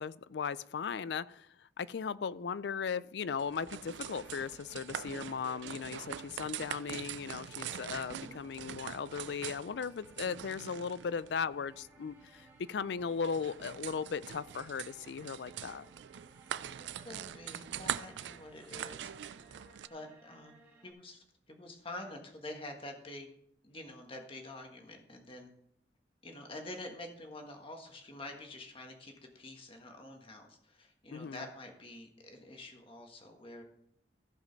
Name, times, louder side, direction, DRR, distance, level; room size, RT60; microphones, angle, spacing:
voice 1, 0.0-1.5 1.8-15.9 31.1-31.4, left 6 dB, 70° left, 18 dB, 0.4 m, -37 dB
sound 1, 3.4-19.9, right 9 dB, 75° right, 0.4 m, -44 dB
sound 2, 4.0-20.9, right 2 dB, 10° right, 2.3 m, -61 dB
voice 2, 7.9-8.4 16.8-19.1 19.9-23.3 23.6-25.5 26.2-33.6, left 2 dB, 30° left, 3 dB, 1.6 m, -47 dB
15.0 x 5.2 x 5.2 m, 0.73 s
head